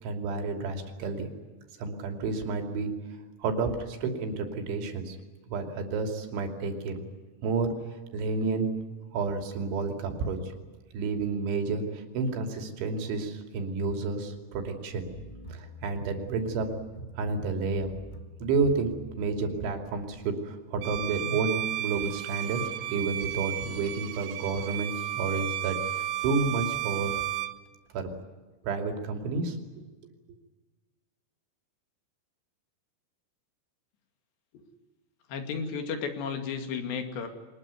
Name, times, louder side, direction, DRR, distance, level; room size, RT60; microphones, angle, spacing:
voice 1, 0.0-1.3 1.8-2.9 3.4-5.2 5.5-7.1 7.4-7.7 8.1-8.7 9.1-10.5 10.9-15.1 15.5-16.7 17.2-17.9 18.4-18.9 19.2-22.6 22.9-27.2 27.9-28.1 28.6-29.6, right 4 dB, 70° right, 5 dB, 5.1 m, -30 dB
sound 1, 14.9-20.3, left 1 dB, 40° left, 0.6 m, -45 dB
Bowed string instrument, 20.8-27.6, right 13 dB, 85° right, 2.0 m, -33 dB
voice 2, 35.3-37.3, left 6 dB, 65° left, 6 dB, 4.3 m, -33 dB
24.0 x 20.5 x 9.5 m, 1.3 s
omnidirectional pair, 5.7 m